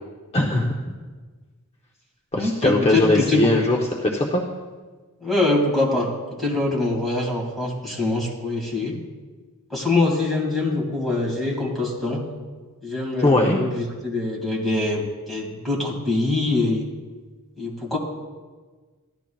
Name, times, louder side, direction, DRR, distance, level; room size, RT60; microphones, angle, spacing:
voice 1, 0.3-0.8 2.3-4.4 13.2-13.6, left 1 dB, 25° left, -1 dB, 0.7 m, -20 dB
voice 2, 2.3-3.5 5.2-6.1 6.4-9.0 9.7-12.2 12.8-16.9 17.6-18.0, left 2 dB, ahead, -3 dB, 2.0 m, -24 dB
15.0 x 11.5 x 2.3 m, 1.4 s
head